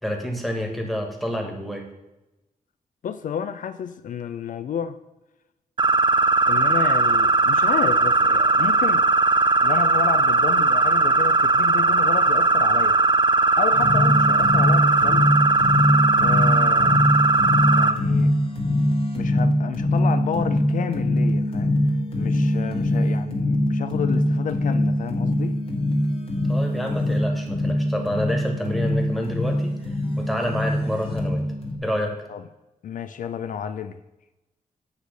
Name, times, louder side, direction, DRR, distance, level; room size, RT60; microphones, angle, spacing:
voice 1, 0.0-1.8 26.5-29.7 30.2-31.4 31.8-32.2, equal, ahead, 2 dB, 1.4 m, -28 dB
voice 2, 3.0-5.0 6.5-9.1 9.6-13.0 13.6-15.3 16.2-17.0 17.7-18.3 19.1-21.7 22.1-25.6 32.3-32.4 32.8-34.0, left 8 dB, 65° left, 10 dB, 0.4 m, -31 dB
sound 1, 5.8-17.9, right 3 dB, 30° right, 0.5 m, -19 dB
sound 2, 13.7-31.8, left 1 dB, 40° left, 1.5 m, -23 dB
8.3 x 3.2 x 6.5 m, 0.99 s
cardioid pair, 90°, 14 cm